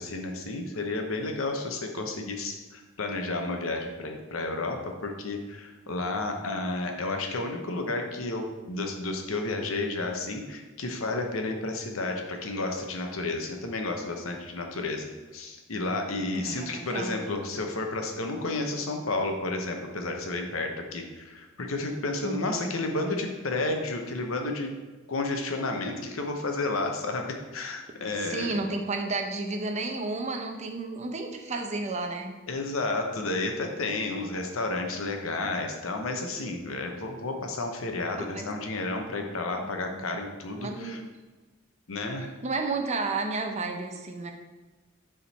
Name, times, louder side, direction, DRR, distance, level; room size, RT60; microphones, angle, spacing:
voice 1, 0.0-24.7 25.1-28.6 32.5-41.0 41.9-42.3, left 2 dB, 80° left, 4 dB, 0.9 m, -31 dB
voice 2, 16.3-17.2 22.2-22.7 28.2-32.4 38.2-38.5 39.6-40.1 40.6-41.1 42.4-44.3, right 3 dB, 35° right, 3 dB, 0.7 m, -32 dB
7.1 x 3.7 x 4.2 m, 1.3 s
head